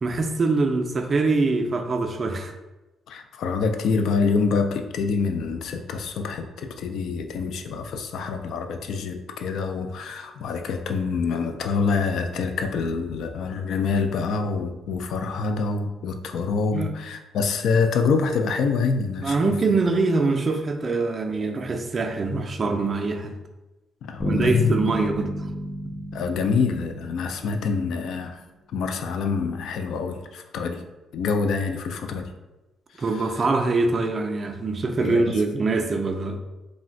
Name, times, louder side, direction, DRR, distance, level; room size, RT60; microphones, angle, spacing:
voice 1, 0.0-2.5 16.7-16.9 19.2-23.3 24.2-25.3 25.9-26.0 33.0-36.4, right 3 dB, 40° right, 5 dB, 0.4 m, -24 dB
voice 2, 3.1-19.5 24.0-24.9 26.1-28.4 28.7-30.8 31.1-32.3 33.0-33.4 35.0-35.3, left 5 dB, 75° left, 6 dB, 0.3 m, -26 dB
sound 1, 24.2-27.9, equal, 15° left, 0.5 m, -31 dB
2.5 x 2.1 x 3.7 m, 1.1 s
cardioid pair, 90°, 0 cm